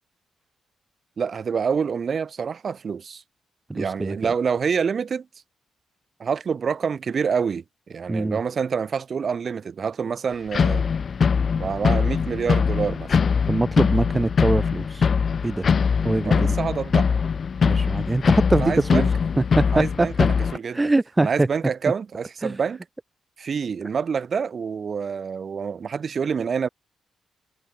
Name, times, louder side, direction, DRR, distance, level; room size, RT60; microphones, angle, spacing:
voice 1, 1.2-3.2 3.7-5.3 6.2-10.8 11.6-13.1 16.2-17.1 18.5-19.1 19.7-20.8 21.2-22.8 23.4-26.7, right 6 dB, 45° right, 3.8 m, -27 dB
voice 2, 3.7-4.3 8.1-8.4 13.5-15.1 15.4-15.7 16.0-16.6 17.6-20.1 20.7-21.5 22.4-22.6, right 2 dB, 15° right, 0.7 m, -23 dB
sound 1, 10.5-20.6, left 6 dB, 45° left, 0.4 m, -22 dB
cardioid pair, 110°, 0 cm